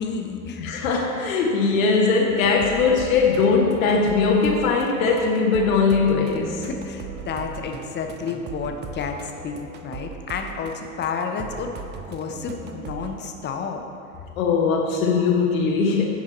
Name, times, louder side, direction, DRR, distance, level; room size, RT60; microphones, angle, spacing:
voice 1, 0.0-0.9 6.6-9.2 9.4-13.8, left 5 dB, 25° left, 4 dB, 0.7 m, -31 dB
voice 2, 0.6-6.7 14.4-16.0, left 4 dB, 70° left, 0 dB, 0.9 m, -20 dB
sound 1, 2.4-13.2, right 5 dB, 25° right, 0.6 m, -39 dB
9.9 x 4.9 x 4.2 m, 2.6 s
hypercardioid pair, 85°, 43 cm